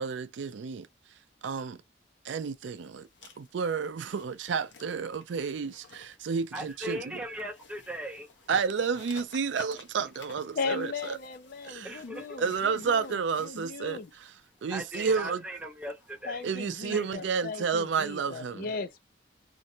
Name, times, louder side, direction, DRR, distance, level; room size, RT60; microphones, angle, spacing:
voice 1, 0.0-1.8 2.2-3.1 3.4-7.2 8.5-11.2 11.6-12.0 12.4-14.3 14.6-15.4 16.4-18.7, right 5 dB, 80° right, 0.4 m, -31 dB
sound 1, 2.6-18.2, left 5 dB, 85° left, 0.7 m, -55 dB
voice 2, 6.5-8.3 11.8-12.4 14.7-16.4 16.9-17.0, equal, 5° right, 0.7 m, -38 dB
voice 3, 10.5-14.1 16.2-19.0, left 4 dB, 50° left, 0.4 m, -37 dB
2.6 x 2.0 x 2.7 m
head